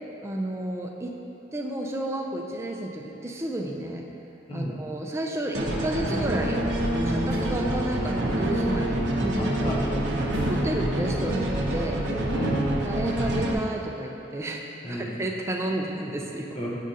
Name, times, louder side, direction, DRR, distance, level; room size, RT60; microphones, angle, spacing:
voice 1, 0.2-1.2 1.5-4.0 4.5-9.8 10.4-12.0 12.8-16.5, right 1 dB, 15° right, 0 dB, 0.4 m, -32 dB
sound 1, 5.5-13.5, right 1 dB, 65° right, 0.6 m, -26 dB
sound 2, 7.2-7.7 10.3-10.8 11.2-11.3, equal, 50° left, 1.5 m, -34 dB
voice 2, 9.4-10.3 12.3-12.7 14.8-15.1 16.5-16.7, equal, 30° left, -4 dB, 0.8 m, -32 dB
7.4 x 4.8 x 2.7 m, 2.8 s
head